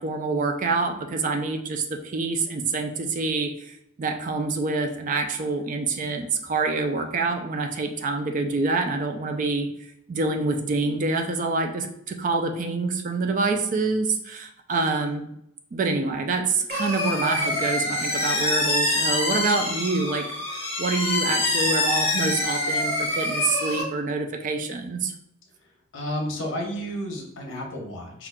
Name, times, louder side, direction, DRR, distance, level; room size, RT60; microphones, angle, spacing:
voice 1, 0.0-9.7 10.1-15.2 15.7-25.1, right 3 dB, 40° right, 5 dB, 0.3 m, -26 dB
sound 1, 16.7-23.8, left 2 dB, 30° left, 0.8 m, -25 dB
voice 2, 25.9-28.3, equal, 60° left, 0 dB, 0.8 m, -31 dB
5.0 x 2.4 x 2.2 m, 0.75 s
head